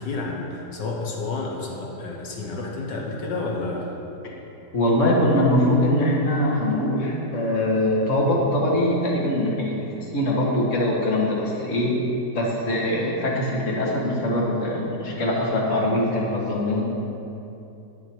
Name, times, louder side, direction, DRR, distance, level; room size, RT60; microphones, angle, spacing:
voice 1, 0.0-3.9, left 3 dB, 85° left, -1 dB, 1.9 m, -30 dB
voice 2, 4.7-11.9 12.3-16.8, left 1 dB, 45° left, -3 dB, 2.0 m, -22 dB
11.0 x 10.0 x 4.7 m, 2.8 s
omnidirectional pair, 1.9 m